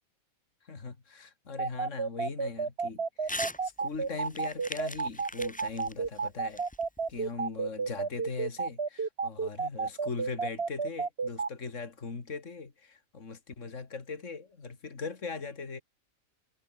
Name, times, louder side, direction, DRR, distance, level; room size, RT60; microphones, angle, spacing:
voice 1, 0.6-6.6 7.1-15.8, left 4 dB, 65° left, 2.8 m, -40 dB
sound 1, 1.6-11.5, right 5 dB, 50° right, 1.9 m, -31 dB
Crumpling crinkling / Tearing, 3.2-3.6 3.9-7.3, left 1 dB, 10° left, 0.4 m, -40 dB
omnidirectional pair, 1.4 m